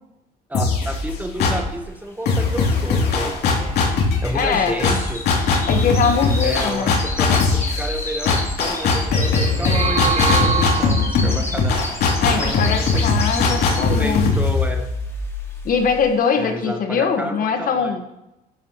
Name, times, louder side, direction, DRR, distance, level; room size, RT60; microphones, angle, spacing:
sound 1, 0.5-1.8 2.3-16.0, left 4 dB, 75° left, 2.7 m, -21 dB
voice 1, 0.5-3.7 4.2-5.2 6.4-7.4 7.7-11.8 12.4-13.2 13.6-14.9 16.4-18.0, right 1 dB, 10° right, 5 dB, 1.0 m, -30 dB
sound 2, 2.9-14.1 14.5-14.8 15.3-15.4, left 2 dB, 15° left, 2.0 m, -31 dB
voice 2, 4.3-4.8 5.7-6.9 12.2-14.5 15.6-18.0, left 6 dB, 55° left, 5 dB, 1.4 m, -22 dB
sound 3, 9.5-11.4, right 7 dB, 40° right, 0.4 m, -24 dB
13.0 x 9.7 x 3.0 m, 0.92 s
cardioid pair, 110°, 17 cm